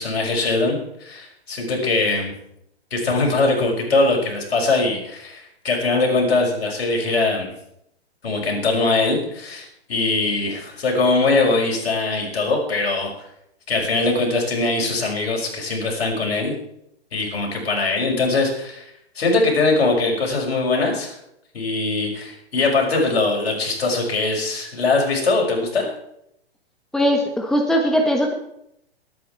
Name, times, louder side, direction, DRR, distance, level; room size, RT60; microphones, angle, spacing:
voice 1, 0.0-2.3 2.9-7.5 8.2-13.1 13.7-16.5 17.1-18.9 19.2-21.1 21.5-25.9, left 3 dB, 65° left, 0 dB, 5.5 m, -21 dB
voice 2, 26.9-28.3, equal, ahead, 3 dB, 1.3 m, -19 dB
21.5 x 9.0 x 4.5 m, 0.76 s
figure-of-eight pair, 120°, 32 cm